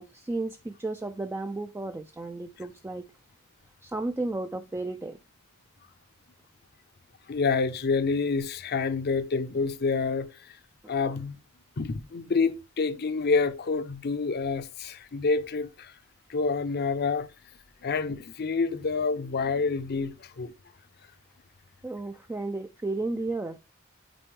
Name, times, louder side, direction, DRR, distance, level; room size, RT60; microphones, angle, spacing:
voice 1, 0.0-3.1 3.8-5.2 10.8-10.9 21.8-23.6, right 2 dB, 10° right, 0.3 m, -33 dB
voice 2, 7.3-10.5 10.9-11.4 11.8-15.9 16.3-17.3 17.8-20.5, left 4 dB, 50° left, 0.6 m, -28 dB
9.1 x 4.4 x 3.1 m
head